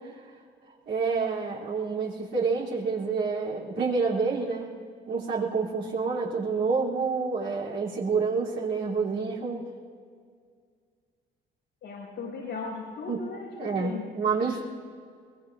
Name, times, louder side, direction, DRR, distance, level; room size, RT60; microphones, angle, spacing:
voice 1, 0.9-4.7 5.1-9.7 13.1-13.2 13.6-14.7, right 4 dB, 65° right, -6 dB, 3.5 m, -28 dB
voice 2, 11.8-14.1 14.4-14.7, left 4 dB, 90° left, -7 dB, 5.5 m, -37 dB
22.5 x 21.0 x 2.7 m, 2.1 s
cardioid pair, 90°, 20 cm